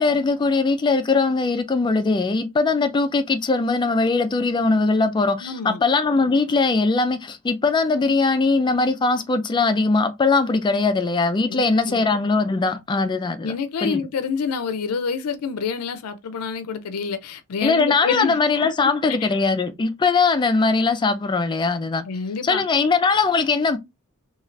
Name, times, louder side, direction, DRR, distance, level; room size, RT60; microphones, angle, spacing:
voice 1, 0.0-13.5 13.8-14.0 17.6-22.0 22.4-23.8, left 3 dB, 20° left, 0.3 m, -20 dB
voice 2, 5.4-5.8 11.5-12.0 13.4-18.7 19.2-19.3 22.0-22.6, left 6 dB, 85° left, 0.4 m, -28 dB
3.1 x 2.3 x 2.5 m
head